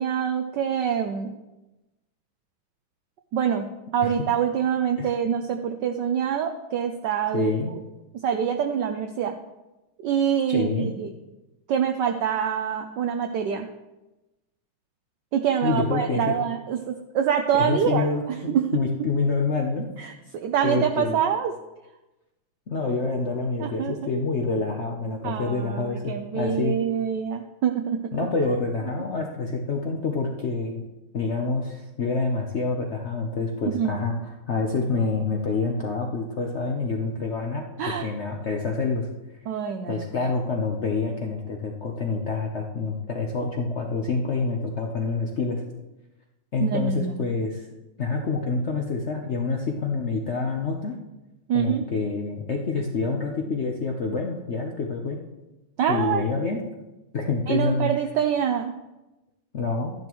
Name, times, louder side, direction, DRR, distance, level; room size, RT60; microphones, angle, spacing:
voice 1, 0.0-1.3 3.3-3.7 3.9-7.8 8.1-9.4 10.0-11.1 11.7-13.7 15.3-18.9 20.0-21.5 23.6-23.9 25.2-28.1 33.6-33.9 37.8-38.1 39.5-40.3 46.6-47.1 51.5-51.8 55.8-56.2 57.5-58.7, right 8 dB, 70° right, 4 dB, 1.1 m, -25 dB
voice 2, 7.3-7.7 10.5-10.9 15.6-16.4 17.5-19.9 20.6-21.2 22.7-26.8 28.1-30.8 31.1-39.1 39.9-45.6 46.5-47.7 48.0-51.0 51.5-55.2 55.9-56.6 57.1-57.9 59.5-59.9, left 3 dB, 60° left, 1 dB, 0.7 m, -27 dB
12.0 x 10.5 x 3.1 m, 1.0 s
omnidirectional pair, 2.3 m